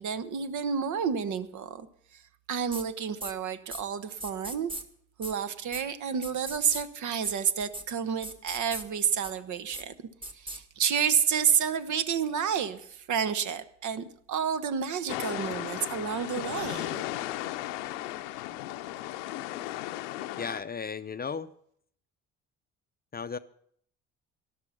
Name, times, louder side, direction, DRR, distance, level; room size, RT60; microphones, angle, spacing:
voice 1, 0.0-1.9 2.5-4.7 5.2-9.9 10.3-17.0, right 7 dB, 55° right, 1.1 m, -30 dB
sound 1, 2.7-2.8 3.2-3.3 3.7-3.8 4.2-4.8 5.2-5.3 5.7-5.8 6.2-6.8 7.2-7.3 7.6-7.8 8.2-8.8 9.2-9.3 9.7-9.8 10.2-10.6, right 1 dB, 15° right, 1.7 m, -38 dB
sound 2, 15.1-20.6, left 15 dB, 75° left, 0.8 m, -35 dB
voice 2, 20.4-21.5 23.1-23.4, left 5 dB, 25° left, 0.6 m, -35 dB
13.0 x 11.5 x 5.6 m
hypercardioid pair, 55°, 36 cm